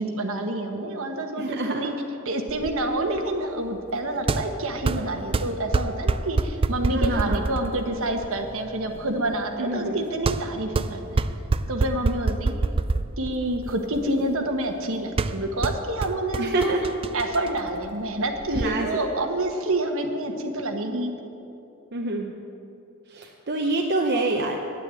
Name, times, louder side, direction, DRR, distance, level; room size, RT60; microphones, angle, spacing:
voice 1, 0.0-1.9 2.2-11.2 11.7-12.5 13.2-16.7 17.1-21.1, right 1 dB, 65° right, 5 dB, 1.2 m, -28 dB
voice 2, 1.4-1.9 6.9-7.4 9.6-10.0 16.4-16.9 18.5-18.9 21.9-22.3 23.1-24.6, right 2 dB, 50° right, 1 dB, 0.8 m, -26 dB
sound 1, 2.5-18.7, right 3 dB, 25° right, 0.3 m, -28 dB
9.6 x 9.4 x 8.3 m, 2.8 s
head